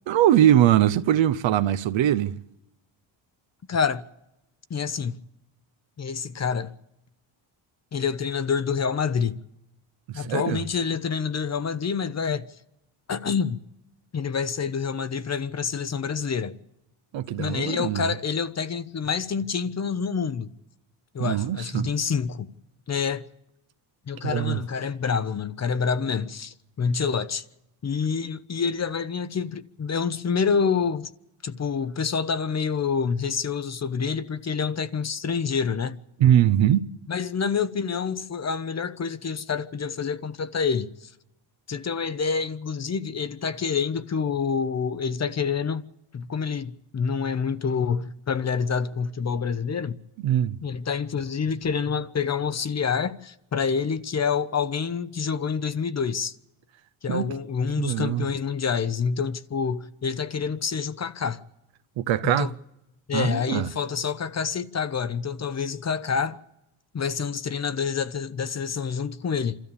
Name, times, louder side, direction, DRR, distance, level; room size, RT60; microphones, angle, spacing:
voice 1, 0.1-2.3 10.1-10.6 17.1-18.1 21.2-21.9 24.2-24.6 36.2-36.9 50.2-50.6 57.1-57.3 57.8-58.3 62.0-62.5 63.1-63.7, right 11 dB, 65° right, 0.9 m, -22 dB
voice 2, 3.7-4.0 4.7-5.2 6.0-6.7 7.9-9.4 10.1-12.5 13.1-13.6 14.1-16.6 17.4-20.5 21.1-22.5 22.9-23.2 24.1-27.4 27.8-31.1 31.4-36.0 37.1-41.1 41.7-49.9 50.6-56.3 57.0-61.4 62.2-62.5 63.1-66.4 66.9-69.6, left 6 dB, 35° left, 0.8 m, -27 dB
28.0 x 13.5 x 7.0 m
cardioid pair, 90°, 49 cm